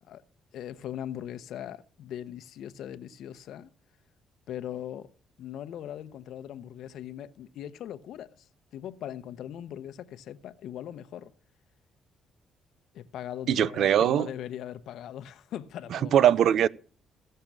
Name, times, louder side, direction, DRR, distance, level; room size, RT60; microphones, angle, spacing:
voice 1, 0.5-3.7 4.5-5.1 5.4-11.3 12.9-16.3, left 11 dB, 80° left, 0.8 m, -40 dB
voice 2, 13.5-14.3 15.9-16.7, right 10 dB, 70° right, 0.5 m, -21 dB
16.0 x 6.7 x 7.4 m
cardioid pair, 90°, 0 cm